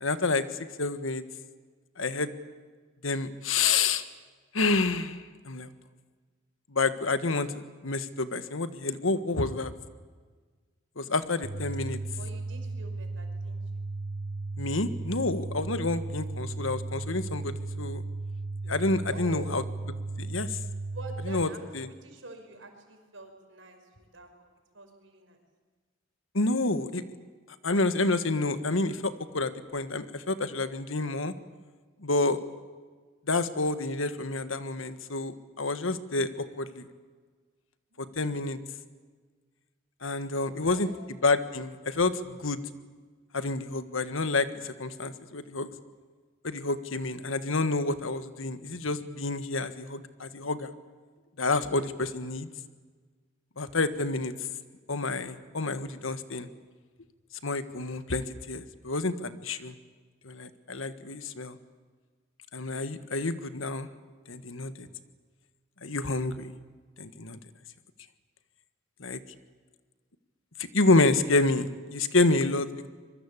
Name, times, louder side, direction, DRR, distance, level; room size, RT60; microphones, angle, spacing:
voice 1, 0.0-0.4 0.8-1.2 2.0-2.3 3.0-4.0 4.5-5.2 5.4-5.7 6.7-9.7 11.0-12.0 14.6-18.0 18.7-19.6 20.2-20.6 21.3-21.5 21.8-21.9 26.3-27.0 27.6-31.3 32.0-32.4 33.3-36.8 38.2-38.6 40.0-40.9 41.2-42.6 43.3-45.7 46.4-50.7 51.4-52.5 53.6-54.3 54.9-56.5 57.4-59.7 60.2-61.6 62.5-63.9 64.3-64.9 65.8-66.5 67.0-67.4 69.0-69.2 70.7-72.9, left 3 dB, 85° left, 11 dB, 1.6 m, -28 dB
sound 1, 11.4-21.4, right 3 dB, 40° right, 1.3 m, -35 dB
voice 2, 12.1-13.8 19.1-19.6 20.8-24.4 24.7-25.4 37.9-38.2 40.3-41.1, right 2 dB, 75° right, 4 dB, 5.5 m, -47 dB
25.5 x 23.0 x 8.5 m, 1.5 s
head